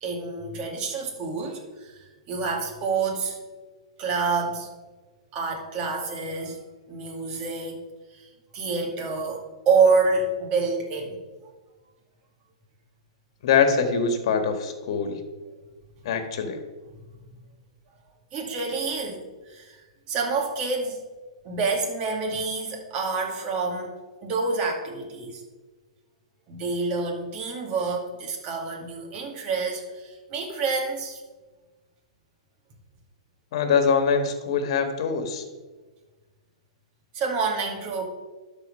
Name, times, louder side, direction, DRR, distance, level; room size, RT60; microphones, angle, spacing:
voice 1, 0.0-3.4 4.0-4.7 5.3-6.6 6.9-7.8 8.1-8.3 8.5-11.2 18.3-19.8 20.1-21.0 21.4-25.4 26.5-31.2 37.1-38.0, right 4 dB, 35° right, 0 dB, 2.3 m, -27 dB
voice 2, 13.4-15.2 16.0-16.6 33.5-35.4, left 6 dB, 60° left, 7 dB, 1.5 m, -23 dB
12.0 x 4.3 x 5.4 m, 1.3 s
hypercardioid pair, 130°, 3 cm